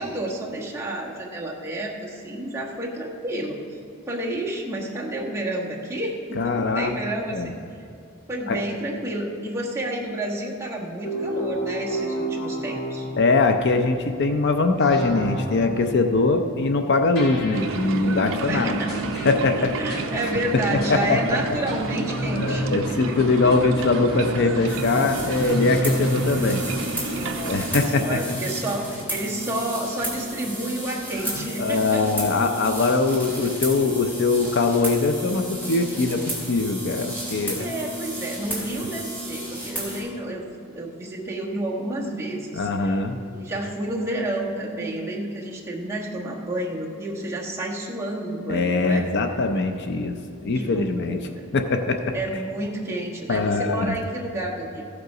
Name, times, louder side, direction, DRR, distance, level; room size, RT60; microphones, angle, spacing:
voice 1, 0.0-3.6 4.1-7.5 8.3-13.0 18.5-19.1 19.8-23.2 27.1-32.1 37.6-43.0 43.3-49.1 50.5-51.5 52.1-54.8, right 1 dB, 15° right, -4 dB, 1.2 m, -30 dB
voice 2, 6.4-7.0 7.3-7.5 8.5-8.6 13.2-18.7 19.3-20.0 20.7-21.2 22.3-26.6 27.4-28.2 31.4-37.7 42.5-43.2 48.5-51.2 51.5-52.2 53.3-53.9, left 3 dB, 50° left, 6 dB, 0.5 m, -22 dB
sound 1, 11.0-13.4 14.8-15.7 17.2-17.8 18.9-19.3 19.9-20.3 20.8-21.1 21.7-26.7, right 1 dB, 80° left, 2.8 m, -30 dB
sound 2, 17.5-27.9, right 3 dB, 60° right, 0.6 m, -31 dB
sound 3, 24.7-40.0, right 1 dB, 10° left, 2.8 m, -33 dB
14.5 x 6.7 x 4.9 m, 2.4 s
head